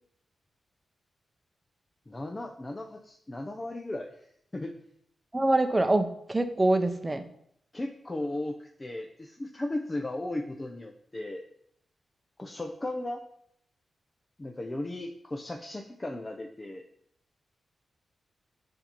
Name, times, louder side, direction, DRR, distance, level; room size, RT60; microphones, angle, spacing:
voice 1, 2.1-4.3 4.5-4.8 7.7-11.4 12.4-13.2 14.4-16.8, left 1 dB, 25° left, 2 dB, 0.7 m, -36 dB
voice 2, 5.3-7.3, right 2 dB, 20° right, 8 dB, 0.7 m, -25 dB
7.6 x 2.9 x 5.3 m, 0.70 s
cardioid pair, 55°, 0 cm